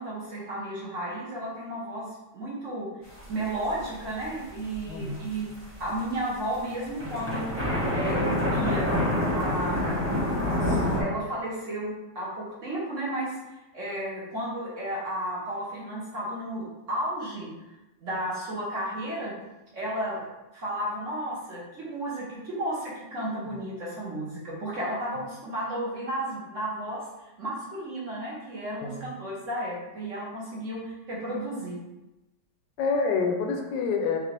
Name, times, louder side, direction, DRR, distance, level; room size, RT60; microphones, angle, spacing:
voice 1, 0.0-2.9 3.3-5.5 5.8-7.5 7.9-8.9 9.3-17.5 18.0-19.3 19.7-20.2 20.5-31.8, right 1 dB, 50° right, -6 dB, 1.2 m, -33 dB
sound 1, 3.1-4.2 4.6-6.2 6.5-6.6 6.9-11.0, left 1 dB, 10° right, 1.0 m, -27 dB
voice 2, 4.9-5.3 23.4-23.6 28.8-29.1 32.8-34.2, left 4 dB, 75° left, 3 dB, 1.2 m, -27 dB
3.6 x 3.6 x 3.2 m, 1.0 s
omnidirectional pair, 2.0 m